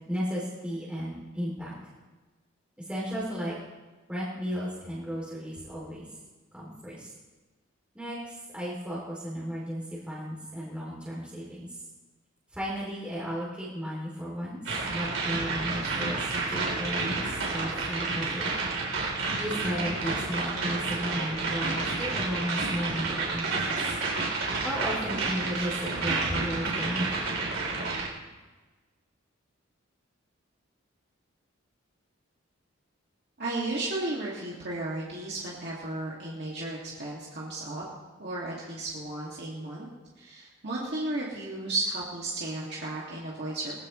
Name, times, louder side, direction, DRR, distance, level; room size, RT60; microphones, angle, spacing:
voice 1, 0.1-1.7 2.9-3.5 4.1-6.1 6.5-7.1 7.9-8.2 8.5-11.8 12.6-14.6 14.9-18.5 19.1-23.8 24.6-27.3, equal, 5° right, -7 dB, 3.0 m, -34 dB
sound 1, 14.7-28.1, right 3 dB, 75° right, 3.7 m, -30 dB
voice 2, 33.4-37.8 38.2-39.9 40.2-43.9, right 2 dB, 50° right, -5 dB, 2.3 m, -34 dB
21.0 x 15.0 x 3.2 m, 1.3 s
head